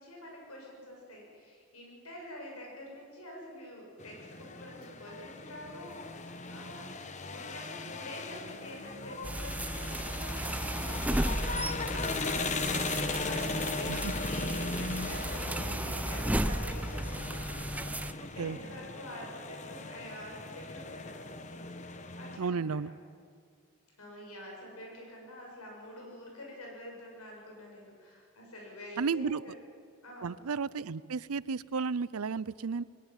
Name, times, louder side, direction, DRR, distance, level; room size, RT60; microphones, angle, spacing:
voice 1, 0.0-6.9 7.2-17.9 18.3-22.8 24.0-29.5 30.0-30.3, left 1 dB, 85° left, -1 dB, 7.3 m, -47 dB
sound 1, 4.0-22.4, left 3 dB, 35° left, 1.0 m, -38 dB
sound 2, 9.2-18.1, right 1 dB, 5° right, 0.5 m, -34 dB
voice 2, 22.4-22.9 29.0-29.4 30.2-32.8, right 5 dB, 85° right, 20 dB, 0.6 m, -33 dB
21.5 x 18.5 x 9.0 m, 2.1 s
head